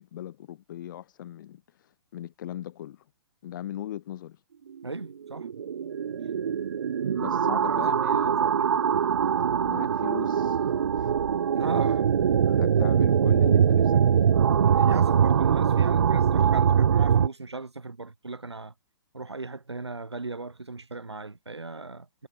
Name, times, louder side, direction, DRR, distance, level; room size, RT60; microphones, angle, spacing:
voice 1, 0.0-3.0 3.4-4.4 7.1-8.4 8.7-8.8 9.6-11.1 12.4-14.3, left 12 dB, 50° left, 5.7 m, -39 dB
voice 2, 4.8-5.5 7.3-8.7 11.5-12.4 14.6-18.7 19.1-22.3, right 3 dB, 85° right, 6.6 m, -37 dB
sound 1, 5.0-17.3, right 8 dB, 65° right, 1.8 m, -22 dB
figure-of-eight pair, 125°, 14 cm